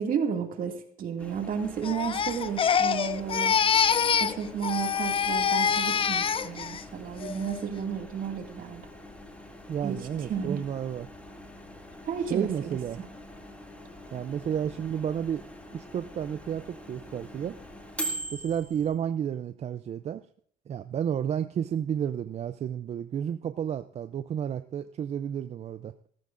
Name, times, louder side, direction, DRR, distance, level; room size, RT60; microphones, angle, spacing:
voice 1, 0.0-3.6 4.2-8.8 9.8-10.0 10.3-10.6 12.0-12.8, right 7 dB, 55° right, 3 dB, 2.2 m, -32 dB
Microwave oven, 1.2-18.9, equal, 10° left, 2.1 m, -44 dB
Crying sobbing, 1.8-4.4 4.6-6.8 7.2-7.6, left 7 dB, 30° left, 0.5 m, -25 dB
voice 2, 9.7-11.1 12.3-13.0 14.1-15.4 15.7-17.6 18.3-20.2 20.7-26.0, right 9 dB, 40° right, 11 dB, 0.4 m, -31 dB
17.5 x 14.0 x 2.5 m, 0.63 s
cardioid pair, 110°, 17 cm